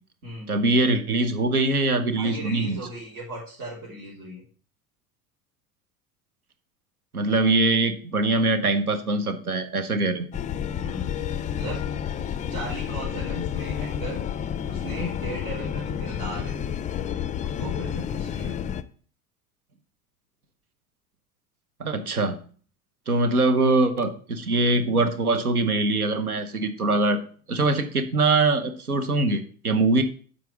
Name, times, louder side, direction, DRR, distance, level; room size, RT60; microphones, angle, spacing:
voice 1, 0.5-2.8 7.1-10.3 21.8-22.4 23.1-27.2 27.5-30.0, right 2 dB, 90° right, 9 dB, 0.9 m, -23 dB
voice 2, 2.2-4.4 10.8-12.2 12.5-14.2 14.6-16.6 17.4-18.6 24.5-24.6, right 1 dB, 65° right, -7 dB, 3.3 m, -37 dB
sound 1, 10.3-18.8, left 9 dB, 20° left, 0.4 m, -30 dB
7.6 x 4.2 x 6.9 m, 0.44 s
figure-of-eight pair, 70°, 43 cm